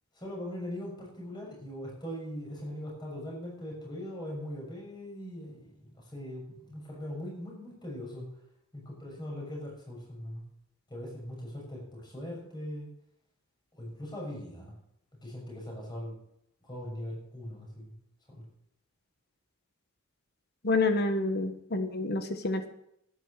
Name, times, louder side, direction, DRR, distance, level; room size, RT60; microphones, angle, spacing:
voice 1, 0.1-8.3 8.7-10.4 10.9-12.9 13.7-14.7 15.2-16.2 16.6-18.0 18.3-18.4, equal, 20° left, -2 dB, 6.5 m, -40 dB
voice 2, 20.6-22.7, left 3 dB, 50° left, 8 dB, 1.2 m, -28 dB
12.0 x 10.0 x 6.5 m, 0.75 s
head